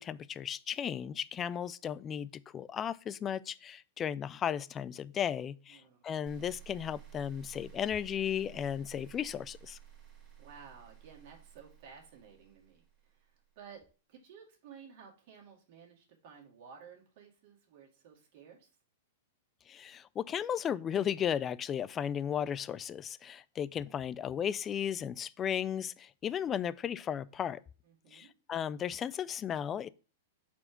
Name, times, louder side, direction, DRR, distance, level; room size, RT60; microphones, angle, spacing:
voice 1, 0.0-9.8 19.7-27.6 28.1-29.9, left 9 dB, 25° left, 0.3 m, -35 dB
sound 1, 6.3-13.4, right 10 dB, 35° right, 2.0 m, -54 dB
voice 2, 10.4-13.8 14.1-18.7 27.8-28.3, right 6 dB, 55° right, 2.2 m, -54 dB
4.3 x 4.3 x 5.8 m
hypercardioid pair, 110°, 0 cm